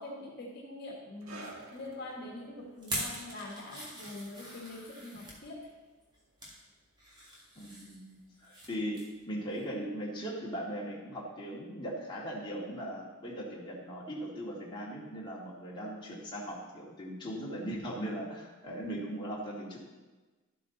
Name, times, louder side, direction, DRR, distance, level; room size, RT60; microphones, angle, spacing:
voice 1, 0.0-5.7, left 2 dB, 50° left, -2 dB, 1.6 m, -44 dB
sound 1, 1.2-8.2 8.5-8.7 9.4-9.5, right 2 dB, 85° right, 1.5 m, -54 dB
sound 2, 2.8-5.4 6.0-6.6 7.0-8.7 8.9-9.2 9.6-9.7, right 1 dB, 20° right, 2.4 m, -42 dB
voice 2, 7.6-19.8, equal, 20° left, -5 dB, 2.1 m, -39 dB
12.5 x 8.4 x 4.0 m, 1.2 s
head